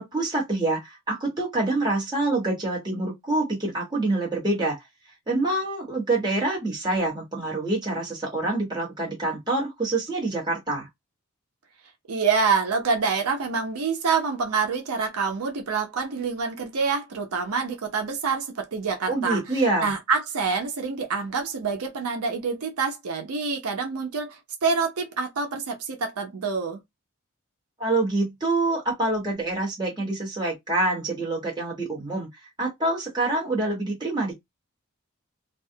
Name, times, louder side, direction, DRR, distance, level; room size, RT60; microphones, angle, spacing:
voice 1, 0.0-4.8 5.3-10.9 19.1-19.9 27.8-32.3 32.6-34.4, right 2 dB, 20° right, 1.0 m, -26 dB
voice 2, 12.1-19.4 19.8-26.8, right 5 dB, 85° right, 0.6 m, -26 dB
2.3 x 2.0 x 2.7 m
head